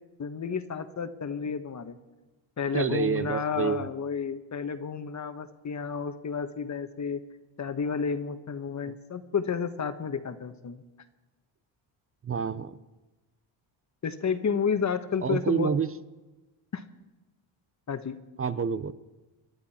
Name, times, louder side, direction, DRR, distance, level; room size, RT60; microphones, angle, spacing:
voice 1, 0.2-2.0 2.6-7.2 7.6-10.8 14.0-15.7 16.7-16.8 17.9-18.2, left 6 dB, 35° left, 9 dB, 1.3 m, -31 dB
voice 2, 2.7-3.9 8.9-9.0 12.2-12.8 15.2-15.9 18.4-18.9, right 6 dB, 25° right, 14 dB, 0.7 m, -28 dB
28.5 x 11.5 x 4.3 m, 1.1 s
cardioid pair, 85°, 49 cm